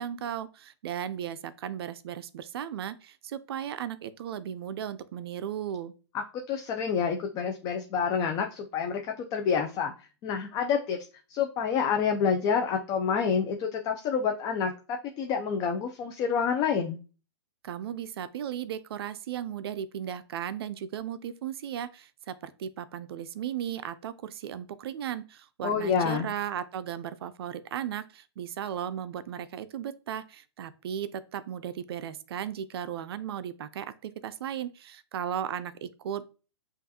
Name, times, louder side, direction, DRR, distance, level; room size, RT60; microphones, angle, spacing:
voice 1, 0.0-5.9 17.6-36.2, right 9 dB, 60° right, 0.4 m, -36 dB
voice 2, 6.3-9.9 10.2-11.0 11.3-14.7 15.2-17.0 25.6-26.3, left 6 dB, 25° left, 0.4 m, -28 dB
5.3 x 2.4 x 2.8 m
hypercardioid pair, 135°, 15 cm